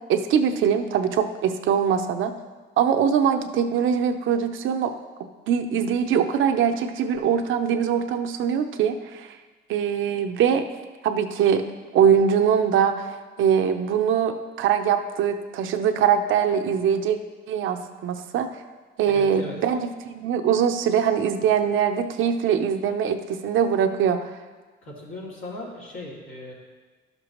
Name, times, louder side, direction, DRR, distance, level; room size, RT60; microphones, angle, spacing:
voice 1, 0.1-2.3 2.8-4.9 5.5-9.3 9.7-10.6 11.0-11.6 11.9-17.2 17.5-18.5 19.0-24.3, right 8 dB, 80° right, 7 dB, 0.7 m, -22 dB
voice 2, 19.1-19.6 24.8-26.5, left 1 dB, 85° left, -5 dB, 2.5 m, -37 dB
11.5 x 6.7 x 3.0 m, 1.3 s
cardioid pair, 90°, 20 cm